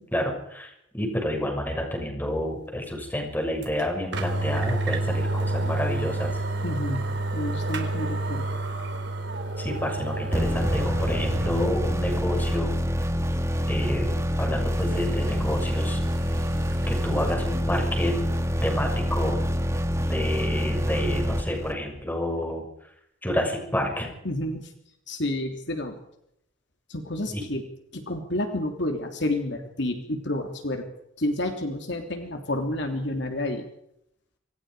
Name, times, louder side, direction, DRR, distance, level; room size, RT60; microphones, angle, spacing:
voice 1, 0.1-6.4 9.6-12.7 13.7-16.0 16.9-18.2 18.6-19.5 20.0-22.7 23.2-24.1 27.3-27.4, left 1 dB, 10° left, 2 dB, 6.5 m, -29 dB
sound 1, 3.6-3.7 4.1-11.7 12.1-12.2 14.7-17.3, right 2 dB, 55° right, 4.0 m, -30 dB
voice 2, 6.6-7.1 7.3-8.4 24.2-24.7 25.1-26.0 26.9-27.6 27.9-30.8 31.2-33.7, left 1 dB, 60° left, 4 dB, 3.2 m, -29 dB
sound 2, 10.3-22.0, equal, 15° right, 1.4 m, -26 dB
27.0 x 27.0 x 5.0 m, 0.75 s
head